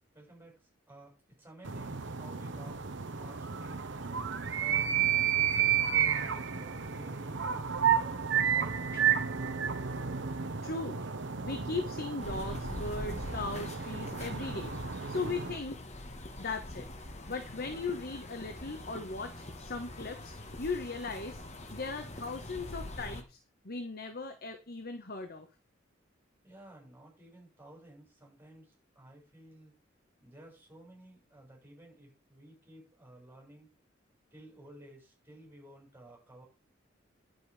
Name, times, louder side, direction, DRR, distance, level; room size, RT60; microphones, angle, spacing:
voice 1, 0.1-2.8 3.2-3.8 4.5-7.5 8.0-10.0 26.4-29.7 30.2-33.7 34.3-36.4, right 1 dB, 10° right, -1 dB, 6.5 m, -54 dB
sound 1, 1.6-15.6, right 8 dB, 70° right, 1.1 m, -32 dB
voice 2, 10.6-11.0 11.4-14.7 15.1-15.9 16.4-16.9 17.3-21.4 21.7-23.4 23.6-25.5, left 3 dB, 55° left, 7 dB, 1.3 m, -38 dB
sound 2, 12.2-23.2, left 1 dB, 35° left, 1.6 m, -44 dB
10.5 x 7.8 x 4.9 m, 0.31 s
head